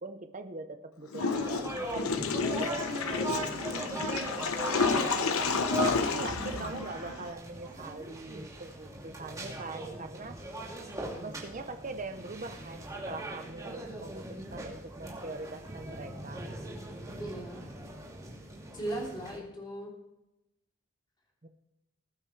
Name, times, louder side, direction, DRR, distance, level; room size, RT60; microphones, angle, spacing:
voice 1, 0.0-3.6 5.0-5.5 5.8-10.4 11.2-16.4 21.4-21.5, right 3 dB, 35° right, 7 dB, 0.8 m, -42 dB
Water / Toilet flush, 1.1-7.3, left 4 dB, 80° left, 0.9 m, -30 dB
sound 1, 1.3-19.4, right 1 dB, 15° right, 2.7 m, -39 dB
voice 2, 17.2-17.6 18.7-19.9, right 1 dB, 20° left, -3 dB, 3.3 m, -38 dB
20.5 x 9.0 x 3.3 m, 0.93 s
head